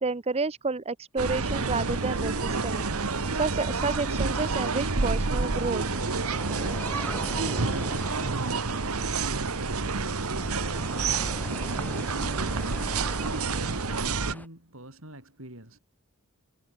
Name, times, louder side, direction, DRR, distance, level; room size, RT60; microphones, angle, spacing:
voice 1, 0.0-2.9 3.4-5.8, right 3 dB, 25° right, 0.6 m, -30 dB
sound 1, 1.2-14.3, right 4 dB, 80° right, 1.4 m, -29 dB
sound 2, 1.4-14.5, left 1 dB, 5° left, 2.2 m, -42 dB
voice 2, 9.1-15.8, right 1 dB, 65° right, 7.3 m, -44 dB
head